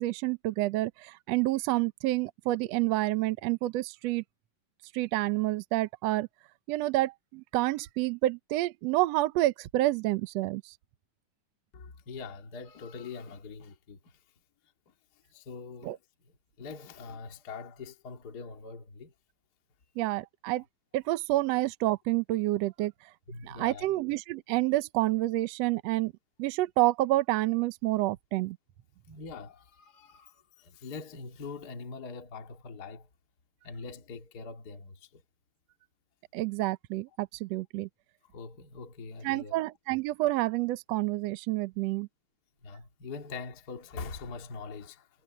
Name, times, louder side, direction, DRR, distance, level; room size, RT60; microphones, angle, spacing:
voice 1, 0.0-4.2 4.9-6.3 6.7-10.7 15.8-16.0 20.0-20.6 20.9-22.9 23.4-26.1 26.4-28.6 36.3-37.9 39.2-42.1, right 17 dB, 80° right, 1.5 m, -28 dB
voice 2, 11.7-14.2 14.9-15.0 15.3-16.0 16.6-19.1 23.3-23.9 29.1-33.1 33.6-35.2 38.3-39.5 42.6-45.1, left 4 dB, 30° left, 2.2 m, -43 dB
omnidirectional pair, 3.9 m